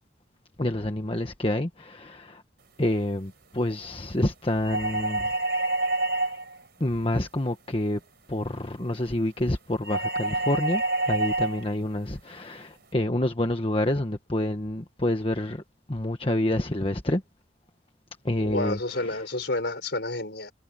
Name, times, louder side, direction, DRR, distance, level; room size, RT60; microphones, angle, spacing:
voice 1, 0.6-2.4 2.8-5.3 6.8-8.0 8.3-15.6 15.9-17.2 18.2-19.2, left 1 dB, 30° left, 1.4 m, -28 dB
sound 1, 4.6-6.6 9.8-11.7, right 2 dB, 60° right, 4.8 m, -27 dB
voice 2, 18.4-20.5, left 2 dB, 65° left, 5.2 m, -30 dB
head